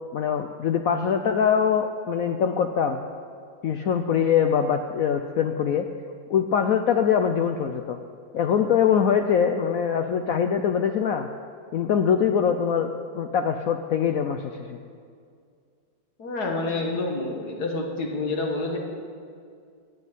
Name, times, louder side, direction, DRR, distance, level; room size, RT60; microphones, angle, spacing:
voice 1, 0.1-3.0 3.6-5.8 6.3-8.0 8.3-11.3 11.7-14.8, left 7 dB, 85° left, 6 dB, 0.7 m, -23 dB
voice 2, 16.2-18.8, left 2 dB, 55° left, 1 dB, 2.2 m, -28 dB
16.5 x 6.3 x 9.1 m, 2.2 s
omnidirectional pair, 2.1 m